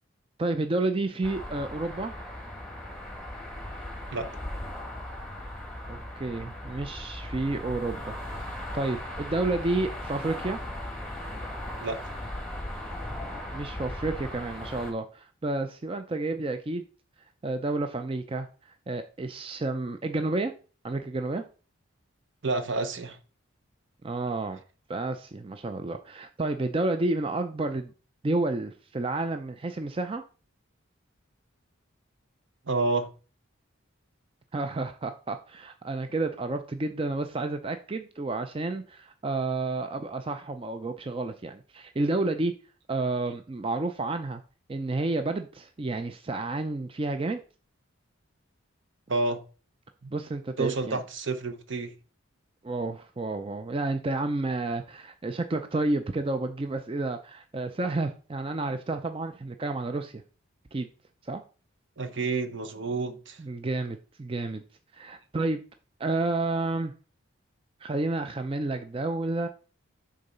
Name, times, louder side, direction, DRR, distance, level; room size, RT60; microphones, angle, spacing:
voice 1, 0.4-2.2 5.9-10.6 13.5-16.8 17.4-18.5 18.9-20.5 20.8-21.4 24.0-24.6 24.9-27.9 28.2-30.2 34.5-42.5 42.9-44.4 44.7-47.4 50.1-51.0 52.6-60.2 60.7-60.9 61.2-61.4 63.4-64.6 64.9-65.6 66.0-66.9 67.8-69.5, right 2 dB, 25° right, 0.4 m, -30 dB
sound 1, 1.2-14.9, left 1 dB, 5° left, 1.5 m, -38 dB
voice 2, 22.4-23.2 32.7-33.1 49.1-49.4 50.0-50.1 50.6-51.9 62.0-63.4, right 3 dB, 60° right, 0.8 m, -29 dB
6.8 x 3.8 x 5.4 m
head